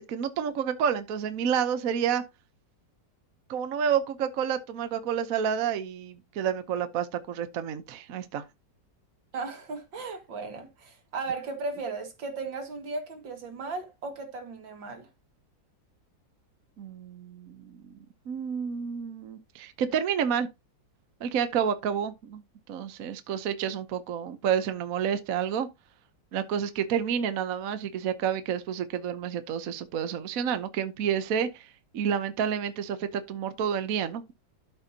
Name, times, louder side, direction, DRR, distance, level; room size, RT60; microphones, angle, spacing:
voice 1, 0.1-2.2 3.5-8.4 16.8-17.8 18.3-20.5 21.2-22.4 22.7-25.7 26.3-31.7 31.9-34.3, right 8 dB, 55° right, 1.1 m, -29 dB
voice 2, 9.3-15.1, right 3 dB, 80° right, 2.6 m, -36 dB
13.0 x 5.4 x 2.8 m
omnidirectional pair, 2.0 m